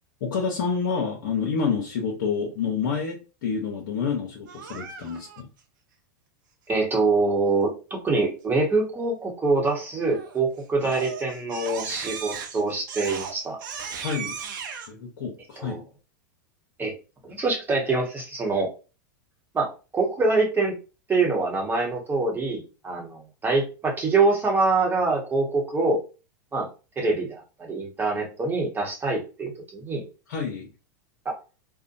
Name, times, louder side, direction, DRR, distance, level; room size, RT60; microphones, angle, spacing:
voice 1, 0.2-5.5 14.0-14.4 14.9-15.8 30.3-30.7, left 5 dB, 75° left, -1 dB, 0.7 m, -28 dB
Crying sobbing, 4.5-5.4 10.1-10.4 10.8-14.9, right 6 dB, 75° right, 0.6 m, -36 dB
voice 2, 6.7-13.6 15.6-15.8 16.8-16.9 17.2-18.7 19.5-20.7 21.1-26.0 26.5-26.7 27.0-30.0 31.2-31.3, right 3 dB, 20° right, -1 dB, 0.9 m, -25 dB
2.6 x 2.1 x 2.5 m, 0.32 s
hypercardioid pair, 115°, 11 cm